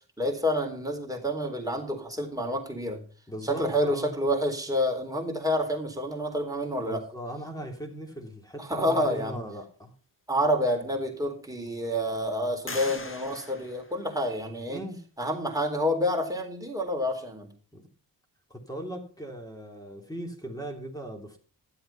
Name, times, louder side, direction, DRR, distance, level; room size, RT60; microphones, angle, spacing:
voice 1, 0.2-3.0 3.4-7.0 8.6-9.4 10.3-14.8 15.2-17.5, equal, 10° right, 2 dB, 3.8 m, -28 dB
voice 2, 3.3-4.1 6.8-9.9 14.7-15.0 17.7-17.9 18.5-21.4, equal, 10° left, 3 dB, 3.2 m, -39 dB
sound 1, 10.4-10.5 11.1-11.7 12.7-14.6, left 3 dB, 30° left, 2.0 m, -42 dB
12.5 x 7.8 x 5.7 m, 0.40 s
cardioid pair, 65°, 42 cm